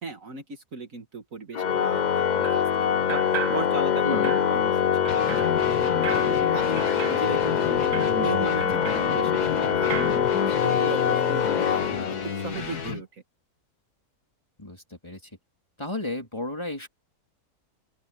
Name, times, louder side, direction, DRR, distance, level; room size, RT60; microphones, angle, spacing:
voice 1, 0.0-7.9 8.2-13.2, right 3 dB, 60° right, 2.3 m, -37 dB
Organ, 1.5-12.5, left 8 dB, 60° left, 0.4 m, -24 dB
sound 1, 2.4-2.7 3.1-4.0 4.2-9.6 9.9-10.3, right 11 dB, 80° right, 1.2 m, -37 dB
voice 2, 4.0-4.4 14.6-15.2 15.8-16.9, left 2 dB, 15° left, 3.7 m, -33 dB
sound 2, 5.1-13.0, left 6 dB, 80° left, 2.4 m, -32 dB
open air
omnidirectional pair, 1.6 m